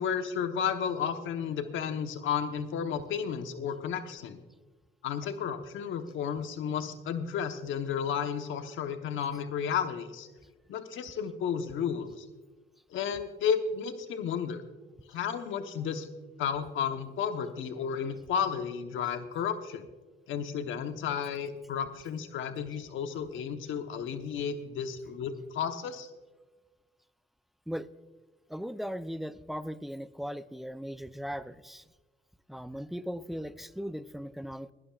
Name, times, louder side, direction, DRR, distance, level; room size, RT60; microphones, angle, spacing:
voice 1, 0.0-4.4 5.0-10.3 10.7-12.3 12.9-14.6 15.1-16.1 16.4-19.9 20.3-26.1, left 7 dB, 75° left, 8 dB, 1.0 m, -32 dB
voice 2, 28.5-31.9 32.5-34.7, equal, ahead, 13 dB, 0.5 m, -38 dB
22.5 x 11.5 x 2.4 m, 1.3 s
cardioid pair, 90°, 20 cm